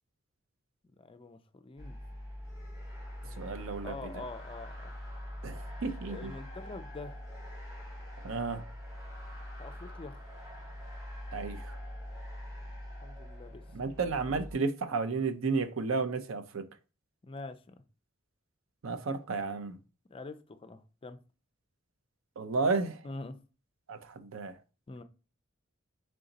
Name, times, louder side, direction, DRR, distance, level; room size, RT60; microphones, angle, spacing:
voice 1, 1.0-2.0 3.2-4.9 6.1-7.2 9.6-10.2 13.0-13.7 14.0-14.2 17.2-17.8 20.1-21.2 23.0-23.4 24.9-25.0, left 3 dB, 25° left, 0.4 m, -45 dB
sound 1, 1.8-14.6, left 1 dB, 20° right, 1.6 m, -44 dB
voice 2, 3.4-4.2 5.4-6.3 8.2-8.7 11.3-11.8 13.7-16.7 18.8-19.8 22.4-23.0 23.9-24.6, right 4 dB, 80° right, 0.5 m, -33 dB
3.9 x 3.4 x 4.0 m
head